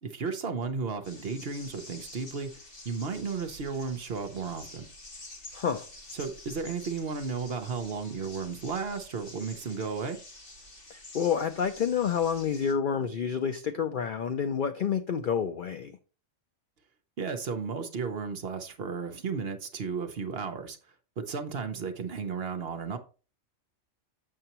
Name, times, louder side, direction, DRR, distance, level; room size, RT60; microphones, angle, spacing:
voice 1, 0.0-2.5 2.8-4.9 6.1-10.2 17.2-20.8 21.2-23.0, right 5 dB, 50° right, 0.9 m, -34 dB
sound 1, 1.0-12.7, left 2 dB, 40° left, 1.9 m, -48 dB
voice 2, 5.5-5.9 10.9-15.9, left 7 dB, 70° left, 0.5 m, -29 dB
6.7 x 6.7 x 2.9 m
omnidirectional pair, 1.4 m